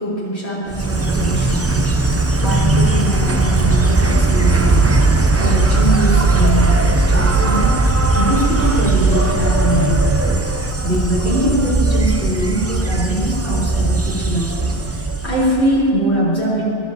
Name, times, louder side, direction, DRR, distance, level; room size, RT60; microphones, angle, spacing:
voice 1, 0.0-7.8 8.1-16.7, right 1 dB, 80° left, -9 dB, 4.7 m, -22 dB
Insect, 0.7-15.8, right 2 dB, 20° right, 0.4 m, -17 dB
25.0 x 13.0 x 2.9 m, 2.7 s
omnidirectional pair, 1.1 m